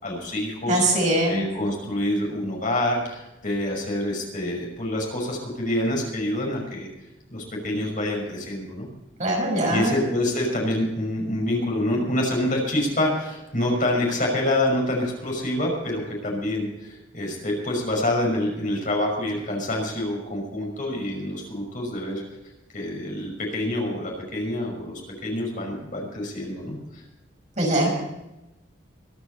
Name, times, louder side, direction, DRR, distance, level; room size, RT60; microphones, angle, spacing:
voice 1, 0.0-0.8 1.3-6.9 7.3-8.9 9.7-22.2 22.7-27.0, left 1 dB, 40° left, -1 dB, 5.8 m, -27 dB
voice 2, 0.7-1.5 9.2-9.9 27.6-27.9, right 1 dB, 35° right, 0 dB, 5.8 m, -22 dB
24.0 x 11.0 x 4.3 m, 0.95 s
head